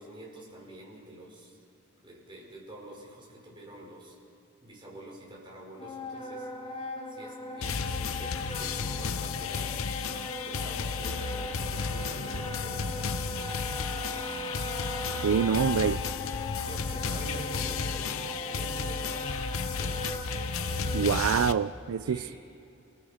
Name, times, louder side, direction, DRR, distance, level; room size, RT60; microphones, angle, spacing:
voice 1, 0.0-1.6 2.0-4.2 4.6-6.8 7.1-9.8 10.4-14.3 15.1-15.6 16.6-19.4 19.8-20.2 22.0-22.4, right 1 dB, 25° right, 5.1 m, -47 dB
Wind instrument woodwind instrument, 5.8-21.3, left 1 dB, 25° left, 1.8 m, -39 dB
sound 1, 7.6-21.5, left 5 dB, 75° left, 0.7 m, -33 dB
voice 2, 15.2-16.0 20.9-22.3, right 7 dB, 90° right, 0.4 m, -26 dB
29.5 x 19.0 x 5.1 m
head